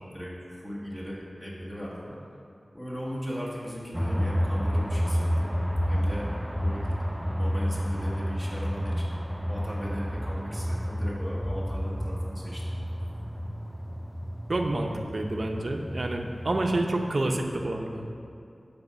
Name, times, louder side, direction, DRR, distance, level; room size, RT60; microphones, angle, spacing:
voice 1, 0.0-2.2 2.7-5.5 5.9-6.9 7.2-9.1 9.4-12.6, equal, 20° left, -6 dB, 1.3 m, -37 dB
sound 1, 3.9-16.9, equal, 10° right, 0.3 m, -30 dB
voice 2, 14.5-18.2, right 2 dB, 65° right, 3 dB, 0.6 m, -28 dB
7.9 x 3.5 x 5.8 m, 2.5 s
wide cardioid pair, 55°, 0 cm